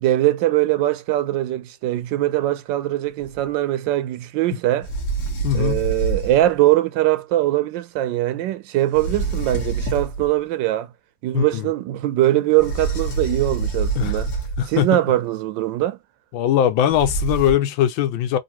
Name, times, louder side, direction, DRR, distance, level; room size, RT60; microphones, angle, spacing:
voice 1, 0.0-4.9 5.5-10.9 11.2-14.3 14.7-16.0, right 15 dB, 80° right, 1.2 m, -21 dB
sound 1, 3.2-3.4 4.8-6.5 8.9-10.3 12.6-14.8 16.9-17.5, right 4 dB, 50° left, 1.6 m, -26 dB
voice 2, 5.4-5.8 11.3-11.7 14.0-14.2 14.6-14.9 16.3-18.4, left 11 dB, 85° left, 1.4 m, -20 dB
3.9 x 2.6 x 2.9 m
omnidirectional pair, 2.1 m